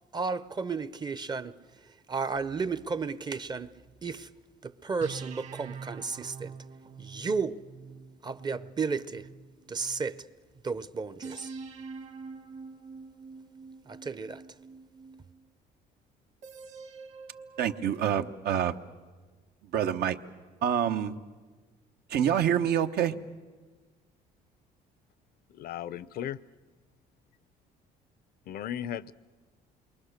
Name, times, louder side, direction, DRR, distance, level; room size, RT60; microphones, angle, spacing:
voice 1, 0.1-1.5 2.1-3.7 4.0-4.3 4.6-6.5 7.0-7.5 8.2-9.2 9.7-10.1 10.6-11.5 13.9-14.4, right 5 dB, 25° right, 0.7 m, -33 dB
sound 1, 2.4-4.4 5.0-10.2 11.2-15.5 16.4-18.0, right 5 dB, 40° right, 1.5 m, -46 dB
voice 2, 17.6-18.8 19.7-20.2 20.6-21.2 22.1-23.1, right 9 dB, 70° right, 1.1 m, -26 dB
voice 3, 25.5-26.4 28.5-29.1, left 10 dB, 65° left, 0.6 m, -36 dB
28.0 x 22.5 x 6.6 m
cardioid pair, 110°, 17 cm